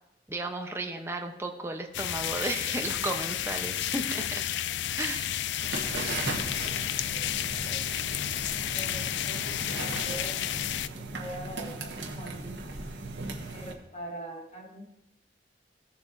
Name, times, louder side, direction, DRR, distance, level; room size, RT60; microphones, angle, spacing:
voice 1, 0.3-4.4 5.0-5.4, right 2 dB, 15° right, 3 dB, 0.8 m, -34 dB
sound 1, 1.9-10.9, left 11 dB, 80° left, 0.3 m, -31 dB
sound 2, 5.6-13.7, right 3 dB, 80° right, 1.2 m, -38 dB
voice 2, 7.1-7.8 8.7-10.4 10.8-12.8 13.5-14.9, right 1 dB, 40° left, -2 dB, 2.1 m, -43 dB
16.0 x 6.9 x 2.6 m, 0.92 s
head